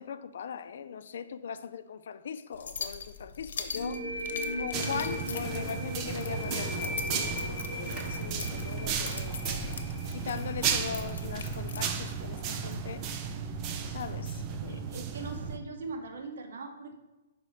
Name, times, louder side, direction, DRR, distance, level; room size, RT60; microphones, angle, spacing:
voice 1, 0.0-4.1 4.5-9.8 10.1-13.1 13.9-14.9, left 7 dB, 60° left, 0.4 m, -40 dB
sound 1, 2.5-11.9, left 5 dB, 90° left, 0.8 m, -42 dB
sound 2, 3.7-11.2, left 1 dB, 40° left, 0.9 m, -38 dB
sound 3, 4.7-15.6, right 6 dB, 20° right, 0.4 m, -34 dB
voice 2, 14.7-17.0, right 3 dB, 75° right, 1.1 m, -41 dB
5.3 x 5.0 x 4.8 m
hypercardioid pair, 175°, 0 cm